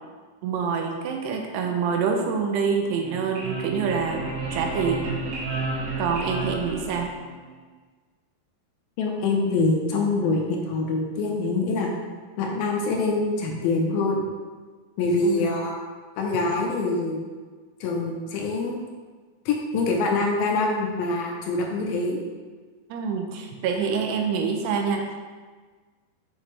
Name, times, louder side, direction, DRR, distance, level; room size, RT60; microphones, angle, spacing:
voice 1, 0.4-5.1 6.0-7.1 15.2-15.6 21.8-22.0 22.9-25.2, right 5 dB, 90° right, 2 dB, 2.8 m, -26 dB
sound 1, 2.8-7.5, right 3 dB, 65° right, 3.1 m, -32 dB
voice 2, 9.0-11.9 12.4-14.3 15.0-15.7 16.2-17.3 17.8-18.8 19.5-22.2, left 3 dB, 75° left, 0 dB, 2.3 m, -25 dB
7.5 x 6.4 x 3.2 m, 1.4 s
omnidirectional pair, 4.7 m